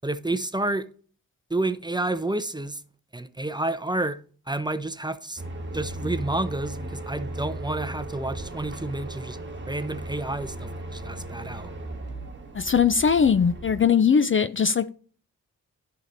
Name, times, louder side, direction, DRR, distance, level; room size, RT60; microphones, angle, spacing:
voice 1, 0.0-0.9 1.5-2.8 3.1-4.2 4.5-5.4 5.7-9.4 9.7-11.7, right 2 dB, 10° right, 0.7 m, -29 dB
sound 1, 5.4-13.9, right 1 dB, 30° right, 1.4 m, -36 dB
voice 2, 12.5-14.9, left 6 dB, 35° left, 0.5 m, -20 dB
11.0 x 5.8 x 2.6 m
cardioid pair, 50°, 35 cm